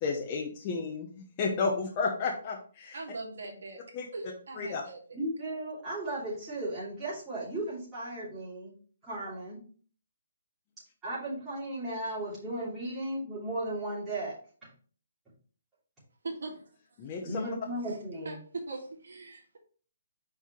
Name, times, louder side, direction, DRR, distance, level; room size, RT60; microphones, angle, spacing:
voice 1, 0.0-3.0 3.9-4.1 4.6-4.8 17.0-17.4, left 4 dB, 25° left, 0 dB, 0.9 m, -32 dB
voice 2, 2.9-3.8 4.1-5.2 16.2-16.6 17.8-18.0 18.2-19.6, right 3 dB, 75° right, 0 dB, 2.0 m, -41 dB
voice 3, 5.1-8.7 9.0-9.6 11.0-14.3 17.2-18.4, right 1 dB, 5° right, -12 dB, 3.0 m, -35 dB
5.6 x 4.6 x 4.5 m, 0.42 s
hypercardioid pair, 165°, 0 cm